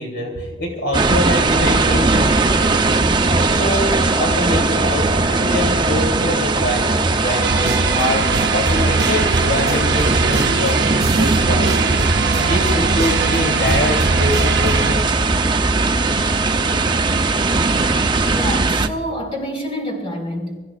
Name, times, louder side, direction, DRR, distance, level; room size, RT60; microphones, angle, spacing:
voice 1, 0.0-15.1, left 1 dB, 65° left, 0 dB, 3.1 m, -25 dB
sound 1, 0.9-18.9, right 3 dB, 25° right, 0.6 m, -19 dB
sound 2, 7.4-15.0, right 4 dB, 60° right, 0.7 m, -22 dB
voice 2, 18.3-20.6, equal, 30° left, 1 dB, 4.7 m, -27 dB
29.0 x 15.5 x 2.4 m, 1.4 s
head